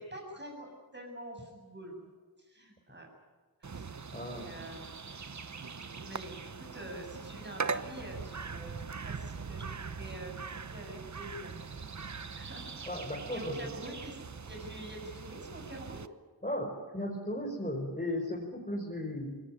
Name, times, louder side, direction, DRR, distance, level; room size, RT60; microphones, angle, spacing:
voice 1, 0.0-2.1 2.4-3.1 3.6-5.0 6.0-11.6 12.3-12.8 13.3-16.1, right 1 dB, 25° right, 1 dB, 7.6 m, -46 dB
sound 1, 3.6-16.1, right 5 dB, 45° right, 1.0 m, -41 dB
voice 2, 4.1-4.5 12.9-13.5 16.4-19.4, left 1 dB, 20° left, -2 dB, 5.3 m, -36 dB
23.0 x 18.5 x 10.0 m, 1.4 s
wide cardioid pair, 55°, 39 cm